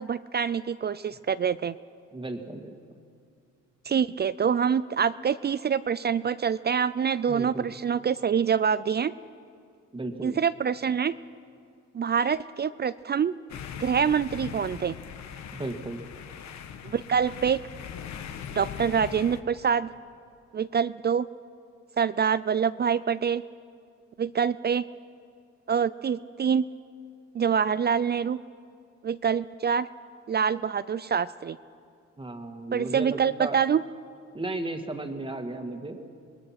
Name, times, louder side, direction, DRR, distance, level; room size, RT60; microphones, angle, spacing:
voice 1, 0.0-1.7 3.9-9.1 10.2-11.1 11.9-13.3 13.8-14.9 16.8-17.6 18.6-19.9 20.5-21.3 22.0-23.4 24.2-24.8 25.7-26.6 27.3-28.4 29.0-29.9 30.3-31.6 32.7-33.8, right 7 dB, 35° right, 16 dB, 0.4 m, -25 dB
voice 2, 2.1-2.7 7.3-7.7 9.9-10.4 15.5-16.0 32.2-33.6 34.3-36.0, right 2 dB, 15° right, 5 dB, 2.0 m, -34 dB
sound 1, 13.5-19.4, left 8 dB, 65° left, 1.3 m, -40 dB
25.5 x 20.5 x 5.9 m, 2.3 s
cardioid pair, 90°, 30 cm